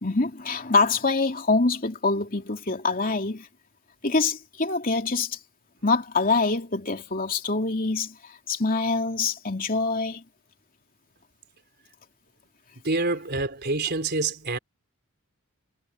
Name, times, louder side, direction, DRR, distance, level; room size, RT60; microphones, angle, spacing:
voice 1, 0.0-3.5 4.0-5.4 5.8-10.2, left 3 dB, 40° left, 2.9 m, -25 dB
voice 2, 12.8-14.6, right 3 dB, 50° right, 3.8 m, -26 dB
head